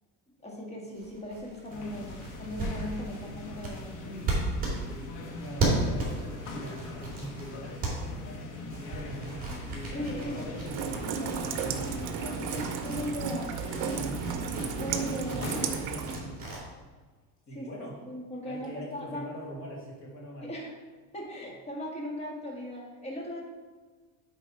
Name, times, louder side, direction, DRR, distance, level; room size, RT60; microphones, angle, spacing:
voice 1, 0.4-4.5 9.9-10.4 12.5-13.5 14.7-15.4 17.5-17.7 18.1-19.3 20.4-20.8 21.1-23.4, left 1 dB, 15° left, -2 dB, 1.7 m, -38 dB
sound 1, 0.9-8.4 8.7-16.6, right 2 dB, 20° right, 2.6 m, -35 dB
sound 2, 1.7-15.8, left 2 dB, 50° left, 1.3 m, -41 dB
voice 2, 5.4-9.5 9.8-14.4 14.9-16.5 17.5-18.0 18.4-20.5, equal, 30° left, -4 dB, 2.5 m, -43 dB
Rain, 10.7-16.2, right 6 dB, 50° right, 0.9 m, -34 dB
8.1 x 4.1 x 5.8 m, 1.4 s
cardioid pair, 150°, 40 cm